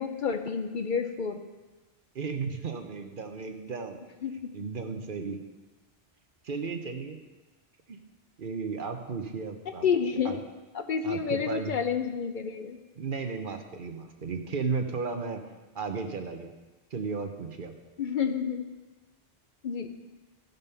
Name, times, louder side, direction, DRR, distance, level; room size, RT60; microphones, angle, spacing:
voice 1, 0.0-1.4 4.2-4.3 9.8-10.4 10.7-12.8 18.0-18.7 19.6-19.9, left 6 dB, 55° left, 7 dB, 0.7 m, -29 dB
voice 2, 2.1-4.0 4.5-5.4 6.4-7.2 7.9-8.0 8.4-9.9 10.2-10.4 11.0-11.8 12.9-15.4 15.7-16.5 16.9-17.7, right 4 dB, 55° right, 6 dB, 1.0 m, -34 dB
13.5 x 5.4 x 5.5 m, 1.2 s
omnidirectional pair, 1.1 m